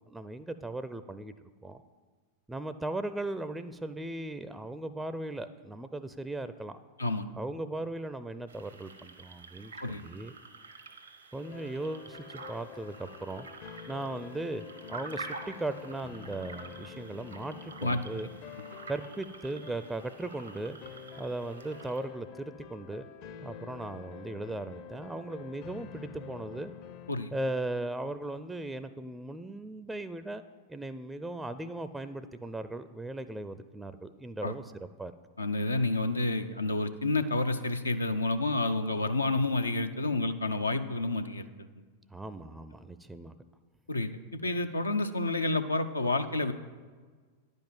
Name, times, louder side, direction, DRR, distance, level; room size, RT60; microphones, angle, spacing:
voice 1, 0.0-1.3 1.6-1.8 2.5-6.8 7.3-10.3 11.3-13.5 13.9-18.3 18.9-20.8 21.2-23.0 23.4-26.7 27.3-30.4 30.7-34.6 35.0-35.1 42.1-43.4, right 2 dB, 10° right, 11 dB, 0.4 m, -38 dB
sound 1, 8.5-22.0, right 3 dB, 85° right, 1.0 m, -48 dB
sound 2, 11.4-27.1, left 8 dB, 50° left, 0.7 m, -48 dB
voice 2, 35.4-41.5 43.9-46.5, left 2 dB, 85° left, 8 dB, 0.6 m, -29 dB
10.5 x 5.3 x 7.4 m, 1.5 s
figure-of-eight pair, 90°, 0 cm